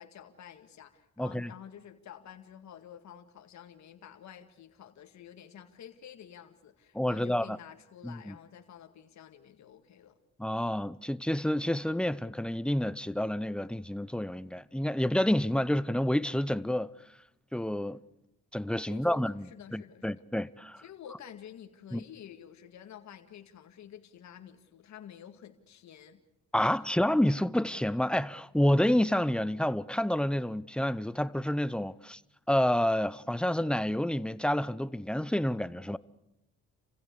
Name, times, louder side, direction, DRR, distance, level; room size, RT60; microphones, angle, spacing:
voice 1, 0.0-10.2 18.9-20.2 20.8-26.2, left 9 dB, 65° left, 2.1 m, -50 dB
voice 2, 1.2-1.5 6.9-7.6 8.0-8.3 10.4-16.9 17.5-18.0 18.5-19.5 19.7-20.8 21.9-22.0 26.5-32.2 32.5-36.0, left 1 dB, 5° left, 0.8 m, -29 dB
29.0 x 16.0 x 8.4 m
cardioid pair, 90°, 30 cm